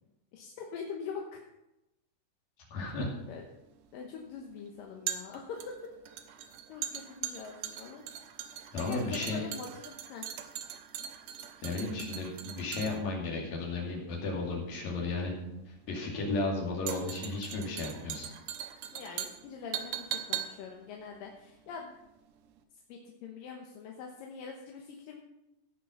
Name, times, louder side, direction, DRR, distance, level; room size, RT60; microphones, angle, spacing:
voice 1, 0.3-1.4 3.3-3.4 3.9-5.9 6.7-8.0 8.8-10.3 18.9-21.9 22.9-25.2, left 6 dB, 70° left, 1 dB, 2.3 m, -43 dB
voice 2, 2.7-3.1 8.7-9.4 11.6-15.3 15.7-18.3, left 3 dB, 45° left, -1 dB, 3.4 m, -34 dB
sound 1, 2.9-22.2 22.5-22.6, right 10 dB, 85° right, 1.8 m, -41 dB
16.5 x 6.2 x 5.4 m, 0.92 s
omnidirectional pair, 4.9 m